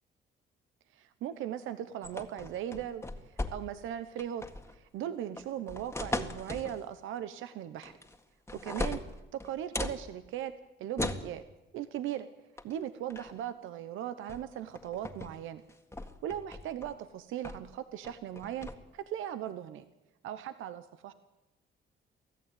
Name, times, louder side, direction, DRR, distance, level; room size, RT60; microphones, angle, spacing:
voice 1, 0.9-4.4 4.7-7.9 8.5-9.0 9.3-10.5 10.8-11.4 11.7-12.3 12.6-15.6 16.2-19.8 20.2-21.1, right 10 dB, 85° right, 11 dB, 1.0 m, -38 dB
sound 1, 2.0-3.9 4.2-4.7 5.4-6.8 7.8-8.2 8.5-10.0 11.0-11.3 12.6-12.8 13.1-13.4 14.3-14.4 14.8-15.3 15.7-16.9 17.4-17.7 18.0-18.7, left 2 dB, 10° left, 1.9 m, -38 dB
24.0 x 15.0 x 9.1 m, 1.0 s
cardioid pair, 90°, 20 cm